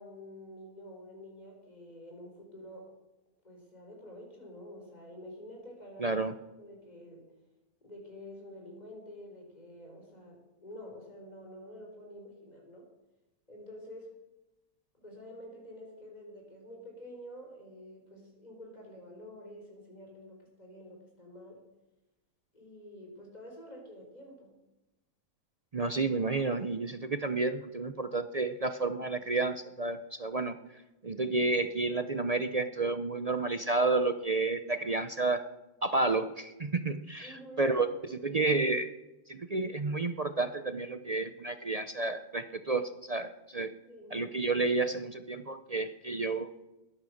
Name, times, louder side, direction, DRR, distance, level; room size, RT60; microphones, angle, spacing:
voice 1, 0.0-2.9 3.4-6.2 6.6-7.3 7.8-12.9 13.5-14.1 15.0-21.6 22.5-24.5 37.2-38.1 43.8-44.2, left 1 dB, 25° left, 0 dB, 4.5 m, -49 dB
voice 2, 6.0-6.3 25.7-30.6 31.0-35.4 35.8-38.9 39.3-43.8 44.1-46.5, right 3 dB, 45° right, 10 dB, 0.5 m, -31 dB
20.5 x 10.5 x 6.4 m, 1.0 s
omnidirectional pair, 1.6 m